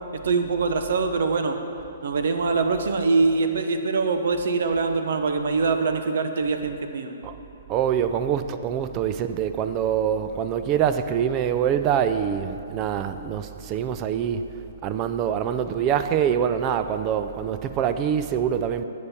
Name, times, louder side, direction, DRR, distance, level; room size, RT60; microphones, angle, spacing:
voice 1, 0.1-1.6 2.0-7.1, right 4 dB, 65° right, 7 dB, 0.9 m, -23 dB
voice 2, 7.7-14.4 14.8-18.9, right 8 dB, 30° right, 10 dB, 0.5 m, -25 dB
13.0 x 8.5 x 4.3 m, 2.8 s
hypercardioid pair, 135°, 0 cm